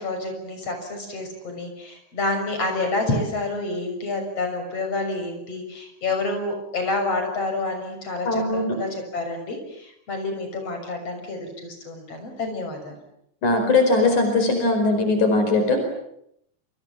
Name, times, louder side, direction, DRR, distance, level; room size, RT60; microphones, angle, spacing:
voice 1, 0.0-12.9, left 2 dB, 55° left, 5 dB, 7.5 m, -28 dB
voice 2, 8.3-8.8 13.4-15.9, left 2 dB, 80° left, 5 dB, 6.3 m, -20 dB
29.0 x 26.0 x 7.5 m, 0.74 s
omnidirectional pair, 3.4 m